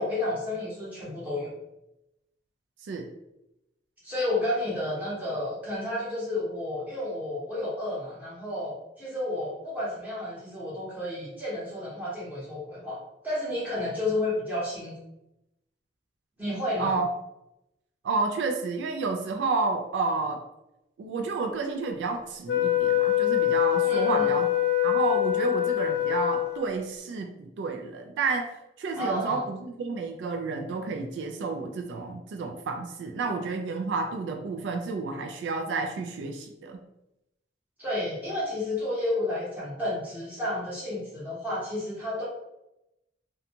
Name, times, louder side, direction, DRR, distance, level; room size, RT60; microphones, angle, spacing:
voice 1, 0.0-1.5 4.0-13.0 13.2-14.9 16.4-17.0 23.8-24.3 29.0-29.4 37.8-42.2, left 1 dB, 10° right, -9 dB, 1.1 m, -31 dB
voice 2, 18.0-20.4 21.0-24.5 24.8-28.5 28.8-36.8, right 4 dB, 80° right, 4 dB, 0.3 m, -30 dB
Wind instrument woodwind instrument, 22.5-26.9, left 13 dB, 65° left, 0.3 m, -24 dB
2.5 x 2.2 x 2.8 m, 0.88 s
head